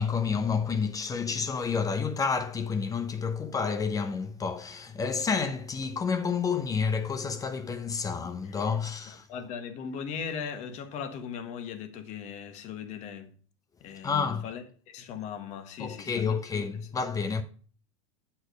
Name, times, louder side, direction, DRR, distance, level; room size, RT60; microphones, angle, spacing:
voice 1, 0.0-9.2 14.0-14.5 15.8-17.4, left 5 dB, 20° left, 0.8 m, -29 dB
voice 2, 9.1-13.3 13.8-16.4, left 7 dB, 45° left, 1.1 m, -39 dB
7.9 x 4.5 x 4.8 m
hypercardioid pair, 90°, 17 cm